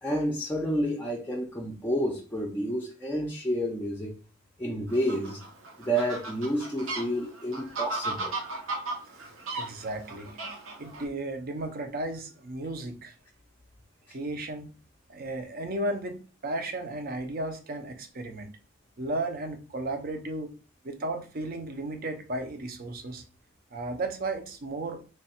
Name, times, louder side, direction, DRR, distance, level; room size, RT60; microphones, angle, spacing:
voice 1, 0.0-4.2 4.6-5.4 5.8-8.4, equal, 10° left, 0.5 m, -30 dB
Fowl, 4.9-11.0, right 2 dB, 85° right, 0.9 m, -36 dB
voice 2, 9.5-10.4 10.8-13.1 14.1-14.7 15.1-18.5 19.0-20.5 20.8-23.2 23.7-25.0, right 2 dB, 50° right, 0.6 m, -34 dB
3.2 x 2.3 x 4.1 m
head